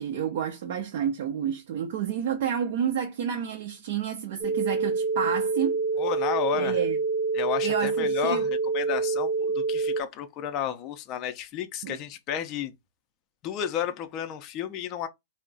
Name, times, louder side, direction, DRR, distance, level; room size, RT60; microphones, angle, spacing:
voice 1, 0.0-5.8 6.6-7.0 7.6-8.5 11.8-12.0, right 8 dB, 60° right, 0.6 m, -30 dB
sound 1, 4.4-10.0, right 4 dB, 20° right, 0.7 m, -27 dB
voice 2, 6.0-6.8 7.3-12.7 13.4-15.1, left 9 dB, 35° left, 0.5 m, -32 dB
2.3 x 2.1 x 3.8 m
hypercardioid pair, 125°, 0 cm